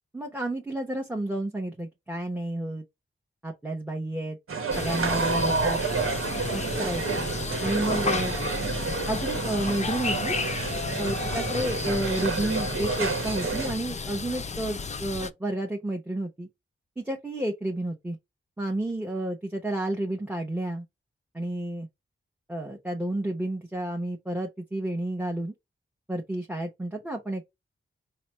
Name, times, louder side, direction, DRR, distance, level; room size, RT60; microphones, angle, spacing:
voice 1, 0.1-2.8 3.4-4.4 4.8-5.9 6.5-7.3 7.6-8.3 9.1-10.3 11.0-16.5 17.0-18.2 18.6-20.9 21.3-21.9 22.5-25.5 26.1-27.4, right 1 dB, 10° right, 0.8 m, -31 dB
sound 1, 4.5-13.7, right 4 dB, 85° right, 1.0 m, -29 dB
sound 2, 4.7-15.3, left 4 dB, 35° left, 0.4 m, -33 dB
4.9 x 2.1 x 4.2 m
wide cardioid pair, 110°, 21 cm